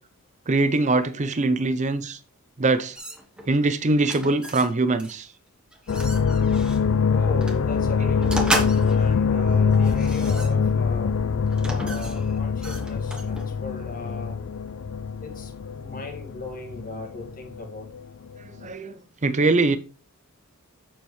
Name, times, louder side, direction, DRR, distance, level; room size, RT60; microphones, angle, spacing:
voice 1, 0.5-2.2 2.6-2.9 3.5-5.3 8.3-8.4 18.6-18.9 19.2-19.8, right 3 dB, 30° right, 0.6 m, -22 dB
sound 1, 2.9-3.5 4.0-4.7 5.0-5.2 5.7-6.8 7.4-7.6 8.2-9.1 9.7-10.9 11.5-13.6, right 1 dB, 5° right, 1.1 m, -32 dB
sound 2, 5.9-18.0 18.3-18.7, left 6 dB, 65° left, 0.4 m, -24 dB
voice 2, 7.0-11.1 11.6-14.4 15.2-17.9, left 2 dB, 40° left, 1.9 m, -38 dB
7.3 x 7.1 x 3.1 m
head